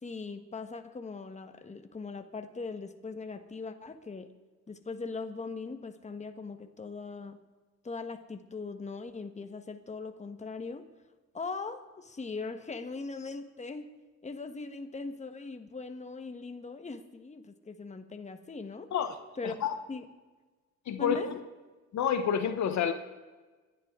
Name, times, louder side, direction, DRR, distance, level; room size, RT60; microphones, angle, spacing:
voice 1, 0.0-4.3 4.7-7.4 7.8-10.8 11.3-13.9 14.2-18.9 19.4-20.1 21.0-21.3, left 4 dB, 25° left, 7 dB, 1.3 m, -40 dB
voice 2, 19.4-19.7 20.9-21.2 21.9-22.9, left 8 dB, 65° left, 9 dB, 1.1 m, -28 dB
25.5 x 11.0 x 3.7 m, 1.3 s
cardioid pair, 90°, 30 cm